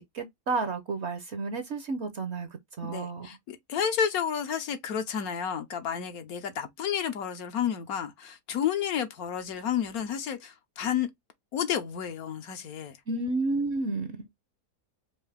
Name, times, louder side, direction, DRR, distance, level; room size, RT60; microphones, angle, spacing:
voice 1, 0.0-2.5 2.8-3.3 13.1-14.3, right 3 dB, 55° right, 0.9 m, -31 dB
voice 2, 2.9-11.1 11.5-13.0, left 8 dB, 70° left, 1.2 m, -31 dB
4.8 x 2.6 x 3.3 m
omnidirectional pair, 1.7 m